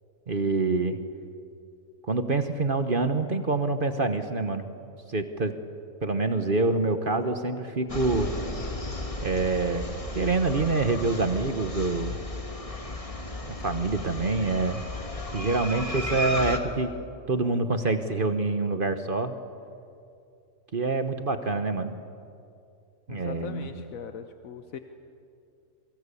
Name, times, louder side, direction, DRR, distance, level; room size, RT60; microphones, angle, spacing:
voice 1, 0.3-1.0 2.1-4.7 5.1-5.5 6.0-8.3 9.2-12.2 13.6-14.8 15.3-16.9 17.3-19.3 20.7-21.9 23.1-23.7, right 3 dB, 40° right, 8 dB, 1.3 m, -26 dB
sound 1, 7.9-16.6, left 1 dB, 25° left, 2.0 m, -34 dB
voice 2, 23.1-24.8, left 7 dB, 85° left, 7 dB, 1.4 m, -40 dB
27.5 x 23.0 x 8.4 m, 2.5 s
omnidirectional pair, 1.4 m